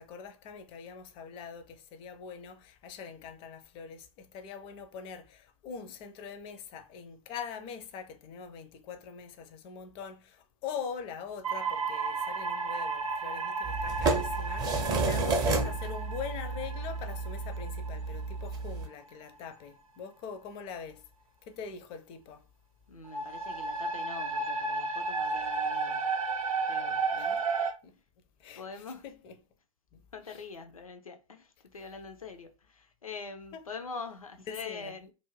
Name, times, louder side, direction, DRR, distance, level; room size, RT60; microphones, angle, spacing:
voice 1, 0.0-21.0 21.4-22.5 27.2-27.3 27.8-28.0 28.4-29.4 29.9-30.4 33.5-33.6 34.5-35.0, left 6 dB, 30° left, 0.4 m, -43 dB
sound 1, 11.4-19.1 23.1-27.7, right 4 dB, 75° right, 0.6 m, -33 dB
sound 2, 13.6-18.9, right 3 dB, 25° right, 0.5 m, -31 dB
voice 2, 22.9-26.1 26.6-27.4 28.6-29.0 30.1-35.1, left 4 dB, 80° left, 0.5 m, -44 dB
2.5 x 2.1 x 3.0 m
figure-of-eight pair, 95°, 18 cm